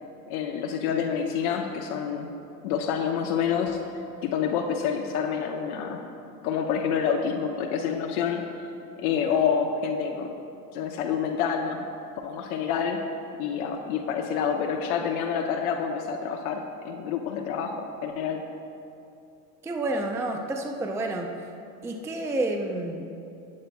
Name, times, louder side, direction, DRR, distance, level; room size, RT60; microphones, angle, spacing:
voice 1, 0.3-2.3 2.6-3.8 4.2-6.0 6.4-8.4 9.0-10.4 10.7-11.9 12.2-13.0 13.4-17.8 18.0-18.4, left 7 dB, 70° left, 2 dB, 1.0 m, -27 dB
voice 2, 19.6-21.3 21.8-23.1, right 2 dB, 5° right, 2 dB, 0.5 m, -29 dB
19.5 x 8.5 x 2.3 m, 2.7 s
supercardioid pair, 115°, 47 cm